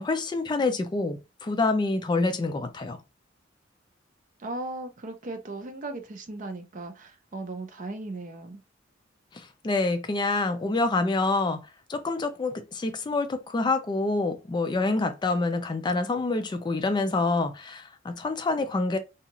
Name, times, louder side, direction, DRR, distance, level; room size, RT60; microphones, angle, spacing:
voice 1, 0.0-3.0 9.3-11.6 11.9-19.0, left 3 dB, 25° left, 0.3 m, -27 dB
voice 2, 4.4-8.6, right 2 dB, 45° right, 0.5 m, -37 dB
2.6 x 2.4 x 2.9 m
head